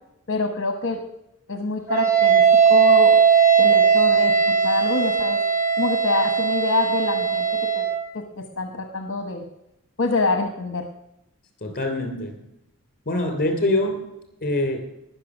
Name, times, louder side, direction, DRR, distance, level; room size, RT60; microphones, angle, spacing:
voice 1, 0.3-1.0 1.5-3.2 3.6-5.4 5.8-7.8 8.1-9.4 10.0-10.9, left 3 dB, 55° left, 6 dB, 1.0 m, -26 dB
Wind instrument woodwind instrument, 1.9-8.0, right 6 dB, 15° right, 1.5 m, -18 dB
voice 2, 11.6-12.4 13.0-14.0 14.4-14.8, left 1 dB, 40° left, 4 dB, 3.2 m, -24 dB
19.0 x 6.6 x 6.2 m, 0.87 s
head